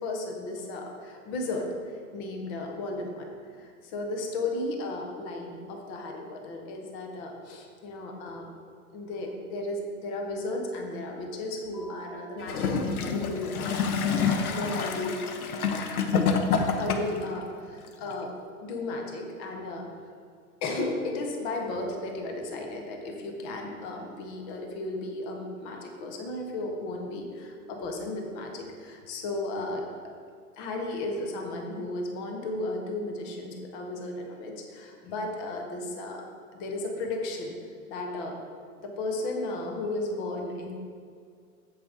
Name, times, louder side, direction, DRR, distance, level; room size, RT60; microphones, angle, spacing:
voice 1, 0.0-8.5 8.9-15.2 16.7-18.3 18.6-19.9 20.6-29.8 30.6-36.2 36.5-37.6 37.9-38.4 38.8-40.7, left 2 dB, 10° left, 2 dB, 0.3 m, -34 dB
Gurgling / Toilet flush, 12.4-17.3 18.1-18.2, left 5 dB, 75° left, 1.1 m, -27 dB
8.6 x 7.5 x 3.6 m, 2.2 s
hypercardioid pair, 125°, 44 cm